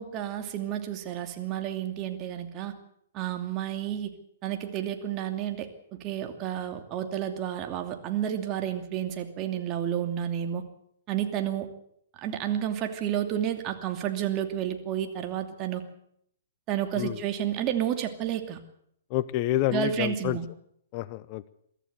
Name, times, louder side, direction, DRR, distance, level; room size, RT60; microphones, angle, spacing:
voice 1, 0.0-2.7 3.1-4.1 4.4-5.7 6.0-10.6 11.1-11.7 12.2-15.8 16.7-18.6 19.7-20.5, right 10 dB, 30° right, 6 dB, 2.7 m, -31 dB
voice 2, 19.1-20.4 20.9-21.5, left 15 dB, 40° left, 17 dB, 0.8 m, -28 dB
23.5 x 14.0 x 8.1 m, 0.71 s
hypercardioid pair, 120°, 0 cm